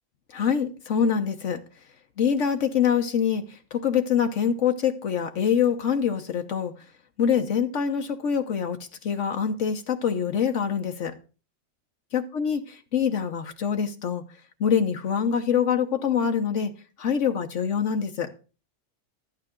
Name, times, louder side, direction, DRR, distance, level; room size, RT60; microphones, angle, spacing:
voice 1, 0.3-1.6 2.2-6.7 7.2-11.1 12.1-14.2 14.6-16.7 17.0-18.3, left 7 dB, 80° left, 1.3 m, -25 dB
12.5 x 8.9 x 3.7 m
omnidirectional pair, 1.3 m